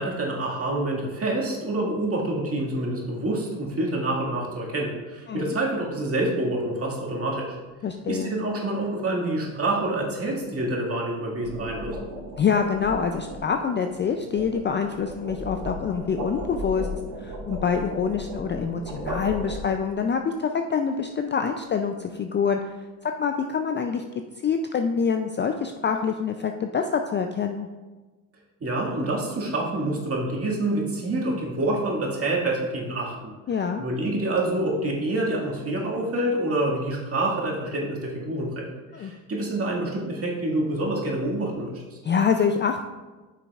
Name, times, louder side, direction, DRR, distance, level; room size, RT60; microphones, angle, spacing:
voice 1, 0.0-7.6 8.1-12.0 28.6-33.3 33.8-38.7 38.9-42.0, right 1 dB, 35° right, -3 dB, 1.9 m, -27 dB
sound 1, 5.8-6.0 11.1-20.0, right 1 dB, 60° right, 1.9 m, -36 dB
voice 2, 7.8-8.3 12.4-16.9 17.2-22.8 23.0-24.0 24.4-27.7 33.5-33.8 38.9-39.1 42.0-42.8, left 6 dB, 30° left, 5 dB, 0.4 m, -26 dB
9.4 x 5.8 x 2.4 m, 1.3 s
supercardioid pair, 85°, 41 cm